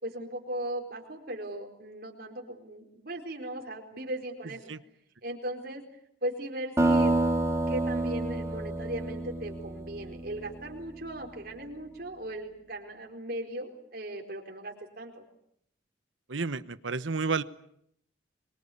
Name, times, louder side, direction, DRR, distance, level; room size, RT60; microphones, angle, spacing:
voice 1, 0.0-4.7 5.2-5.8 6.2-7.2 7.7-15.2, right 1 dB, 55° right, 2 dB, 4.4 m, -38 dB
sound 1, 6.8-11.1, right 2 dB, 15° right, 2.7 m, -28 dB
voice 2, 16.3-17.4, right 4 dB, 90° right, 14 dB, 1.0 m, -30 dB
25.5 x 23.0 x 8.6 m, 0.72 s
head